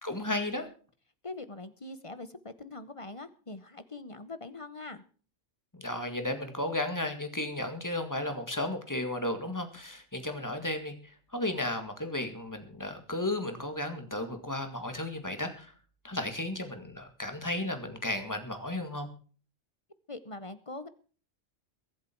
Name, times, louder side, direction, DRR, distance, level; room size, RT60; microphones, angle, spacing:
voice 1, 0.0-0.7 5.7-15.7 16.0-19.1, left 1 dB, 15° left, 6 dB, 2.0 m, -34 dB
voice 2, 1.2-5.0 20.1-20.9, left 2 dB, 30° left, 13 dB, 0.8 m, -43 dB
22.5 x 8.1 x 4.6 m, 0.40 s
omnidirectional pair, 1.3 m